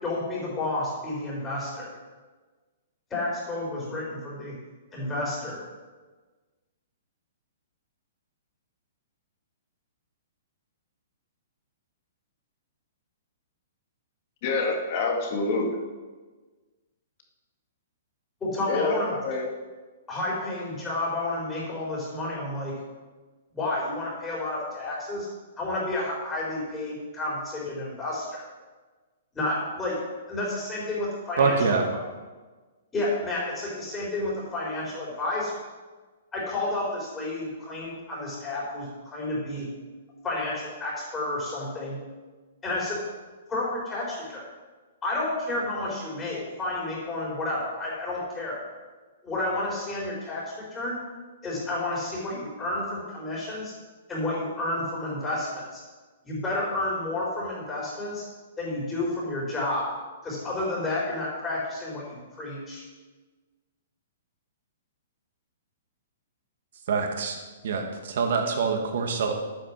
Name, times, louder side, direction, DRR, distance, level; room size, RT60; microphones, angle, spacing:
voice 1, 0.0-1.9 3.1-4.6 4.9-5.6 18.4-19.1 20.1-22.8 23.5-25.3 25.6-28.5 29.3-30.0 30.3-31.8 32.9-35.6 36.3-39.7 40.2-42.0 42.6-43.0 43.5-44.4 45.0-48.6 49.2-51.0 51.4-53.7 54.1-55.8 56.2-58.2 58.6-59.9 60.2-62.8, left 2 dB, 10° left, -5 dB, 4.0 m, -31 dB
voice 2, 14.4-15.8 18.7-19.5, left 3 dB, 35° left, 1 dB, 2.1 m, -27 dB
voice 3, 31.4-31.9 66.9-67.4 67.6-69.3, right 5 dB, 55° right, 3 dB, 2.1 m, -25 dB
11.5 x 9.1 x 6.1 m, 1.3 s
hypercardioid pair, 170°, 0 cm